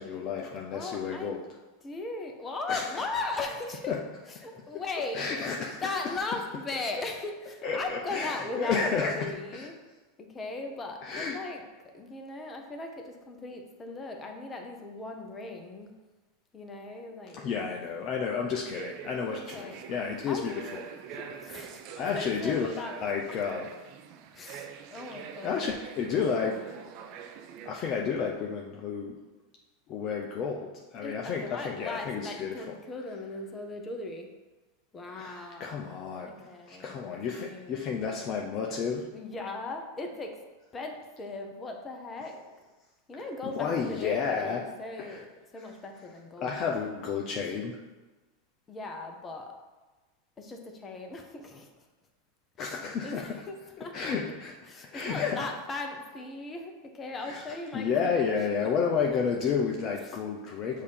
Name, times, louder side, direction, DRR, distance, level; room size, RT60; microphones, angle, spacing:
voice 1, 0.0-1.4 2.7-3.0 3.9-4.0 5.1-5.8 6.9-7.0 7.6-9.7 11.0-11.4 17.3-21.2 22.0-22.7 23.0-23.7 25.4-26.6 27.6-29.1 29.9-32.8 35.1-36.3 36.7-39.1 43.4-44.6 45.0-45.2 46.4-47.8 52.6-53.3 53.8-54.5 54.9-55.4 57.2-57.4 57.7-60.8, left 6 dB, 40° left, 0 dB, 0.6 m, -31 dB
voice 2, 0.7-1.4 1.8-4.0 4.3-5.5 5.8-9.8 10.2-11.6 11.9-15.9 16.5-17.7 19.3-19.8 20.3-20.6 21.1-21.9 22.1-23.0 24.3-25.7 31.0-34.3 34.9-35.8 36.1-37.8 39.1-40.4 40.7-42.4 43.1-45.3 45.5-46.9 48.7-49.5 50.4-51.7 52.6-54.1 54.7-58.2 60.1-60.2, left 3 dB, 25° left, 3 dB, 0.9 m, -38 dB
sound 1, 18.7-27.7, right 8 dB, 50° right, 0.5 m, -45 dB
6.5 x 2.8 x 5.1 m, 1.2 s
hypercardioid pair, 90°, 0 cm